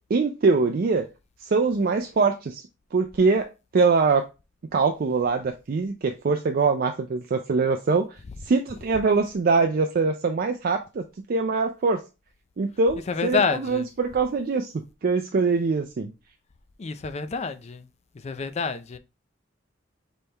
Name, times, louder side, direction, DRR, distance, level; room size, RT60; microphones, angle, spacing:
voice 1, 0.1-1.0 1.4-2.6 2.9-3.5 3.7-4.3 4.7-8.1 8.5-11.0 11.3-12.0 12.6-14.7 15.0-16.1, right 4 dB, 50° right, 0.4 m, -23 dB
voice 2, 13.1-13.9 16.8-17.9 18.2-19.0, left 5 dB, 35° left, 0.4 m, -27 dB
4.1 x 3.6 x 3.3 m
head